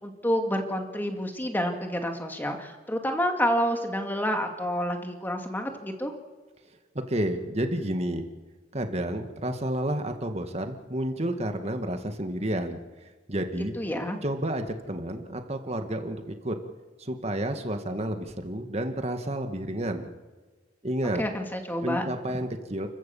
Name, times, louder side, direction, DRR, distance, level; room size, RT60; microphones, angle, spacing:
voice 1, 0.0-6.1 13.8-14.2 21.2-22.0 22.3-22.4, equal, 10° left, 4 dB, 2.3 m, -29 dB
voice 2, 7.0-8.3 8.7-13.7 14.2-16.6 17.0-20.1 20.8-21.2 21.8-22.9, right 1 dB, 40° right, 6 dB, 2.0 m, -30 dB
29.5 x 15.0 x 7.2 m, 1.3 s
head